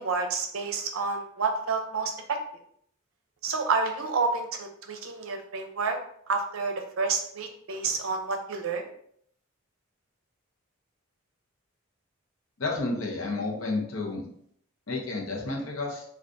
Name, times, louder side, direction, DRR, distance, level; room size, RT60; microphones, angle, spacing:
voice 1, 0.0-2.4 3.4-6.0 6.3-8.8, right 4 dB, 75° right, 4 dB, 0.5 m, -29 dB
voice 2, 12.6-14.2 14.9-16.0, left 3 dB, 70° left, -1 dB, 0.7 m, -31 dB
3.5 x 2.4 x 2.5 m, 0.66 s
head